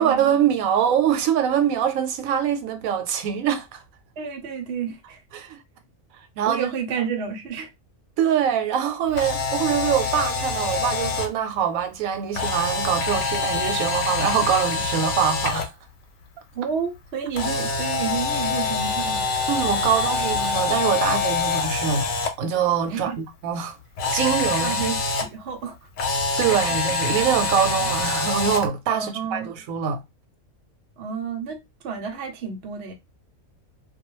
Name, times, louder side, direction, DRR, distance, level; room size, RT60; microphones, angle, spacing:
voice 1, 0.0-3.8 5.3-5.6 6.4-6.7 8.2-15.7 19.5-22.1 22.4-23.8 24.1-24.8 26.4-30.0, right 8 dB, 90° right, 1.0 m, -23 dB
voice 2, 4.2-5.2 6.5-7.7 16.5-19.3 22.9-23.2 24.6-25.8 28.9-29.5 31.0-32.9, right 6 dB, 60° right, 0.9 m, -30 dB
Camera, 9.1-11.3 12.3-15.6 17.3-22.3 24.0-25.2 26.0-28.7, left 4 dB, 70° left, 1.0 m, -25 dB
2.3 x 2.2 x 3.0 m
omnidirectional pair, 1.4 m